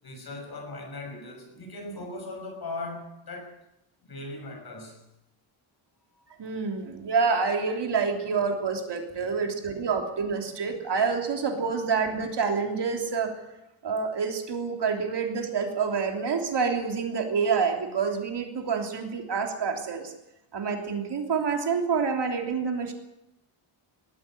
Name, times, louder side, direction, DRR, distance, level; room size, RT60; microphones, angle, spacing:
voice 1, 0.0-3.6 4.0-5.0 6.1-6.4 9.2-9.6 10.5-10.8 11.5-11.7, left 2 dB, 45° left, 3 dB, 6.2 m, -39 dB
voice 2, 6.4-13.3 13.8-20.1 20.5-22.9, right 5 dB, 55° right, 3 dB, 3.3 m, -27 dB
19.0 x 14.0 x 9.9 m, 0.91 s
wide cardioid pair, 170°, 50 cm